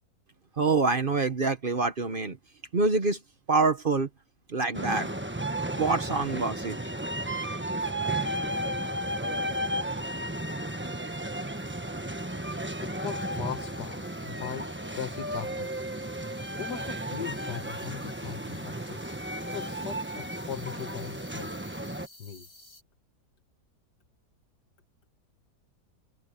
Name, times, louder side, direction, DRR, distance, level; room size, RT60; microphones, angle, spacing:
voice 1, 0.6-2.4 2.7-3.2 3.5-4.1 4.5-5.1 5.8-6.8, right 3 dB, 40° right, 0.9 m, -26 dB
sound 1, 4.7-22.1, right 1 dB, 10° right, 1.0 m, -34 dB
sound 2, 8.0-22.8, left 2 dB, 55° left, 8.6 m, -56 dB
voice 2, 12.8-15.7 16.6-19.0 19.4-21.5 22.2-22.5, left 9 dB, 70° left, 1.9 m, -39 dB
omnidirectional pair, 1.9 m